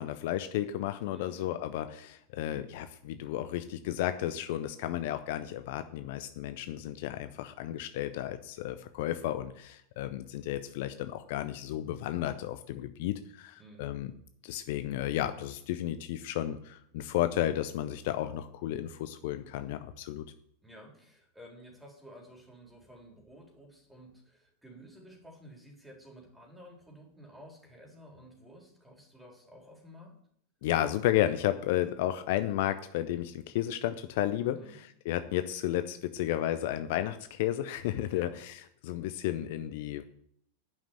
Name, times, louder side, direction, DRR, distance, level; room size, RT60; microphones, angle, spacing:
voice 1, 0.0-14.1 14.4-20.2 30.6-40.0, left 13 dB, 50° left, 10 dB, 0.6 m, -33 dB
voice 2, 1.1-1.5 13.6-13.9 20.6-30.2 34.5-34.8 38.1-38.4, equal, 5° right, 0 dB, 3.9 m, -53 dB
11.0 x 6.0 x 8.8 m, 0.67 s
figure-of-eight pair, 90°, 0 cm